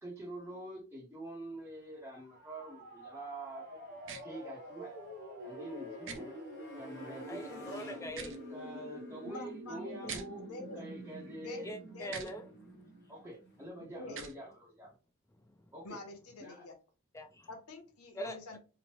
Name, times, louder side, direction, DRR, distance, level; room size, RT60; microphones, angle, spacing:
voice 1, 0.0-3.8 4.2-5.0 5.4-6.4 6.8-7.7 8.5-10.5 10.7-11.8 13.1-14.9 15.7-16.0 16.4-16.6 18.2-18.3, right 1 dB, 10° right, 0.8 m, -46 dB
Motorcycle, 1.6-13.7, left 1 dB, 50° left, 1.0 m, -58 dB
sound 1, 2.2-14.1, equal, 80° right, 1.0 m, -47 dB
sound 2, 4.0-4.2 6.0-6.2 8.0-8.4 10.0-10.3 12.1-12.3 14.1-14.3, right 6 dB, 60° right, 0.6 m, -43 dB
voice 2, 7.3-8.4 10.0-10.2 11.6-12.5 12.8-12.9 17.1-17.5 18.1-18.6, equal, 15° left, 0.4 m, -43 dB
voice 3, 9.3-10.9 11.4-12.2 13.9-14.2 15.8-16.8 17.5-18.6, left 2 dB, 90° left, 0.8 m, -47 dB
3.0 x 2.1 x 2.9 m
head